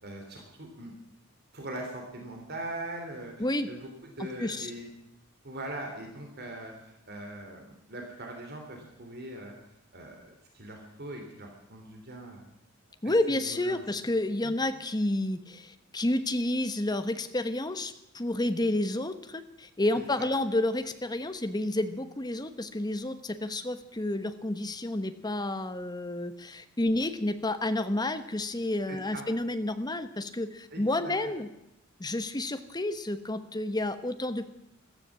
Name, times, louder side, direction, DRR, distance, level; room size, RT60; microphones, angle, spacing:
voice 1, 0.0-0.9 1.5-4.9 5.4-9.5 9.9-12.5 13.0-13.8 14.4-14.6 19.9-20.3 28.9-29.2 30.7-31.2, right 1 dB, 50° right, 2 dB, 3.1 m, -41 dB
voice 2, 3.4-3.7 4.2-4.7 13.0-31.5 32.0-34.5, left 1 dB, 20° left, 10 dB, 1.1 m, -30 dB
14.5 x 14.0 x 7.2 m, 0.82 s
head